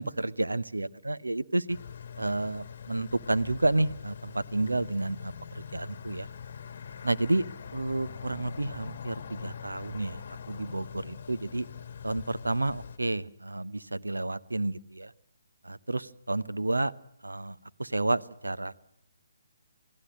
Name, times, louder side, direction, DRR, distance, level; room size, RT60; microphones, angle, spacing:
voice 1, 0.0-1.8 2.2-6.3 7.0-7.4 7.7-11.7 12.0-15.1 15.6-16.9 17.2-18.7, right 2 dB, 75° right, 15 dB, 0.9 m, -30 dB
sound 1, 1.7-13.0, left 7 dB, 45° left, 1.2 m, -43 dB
28.0 x 18.0 x 6.4 m, 0.86 s
figure-of-eight pair, 140°, 0 cm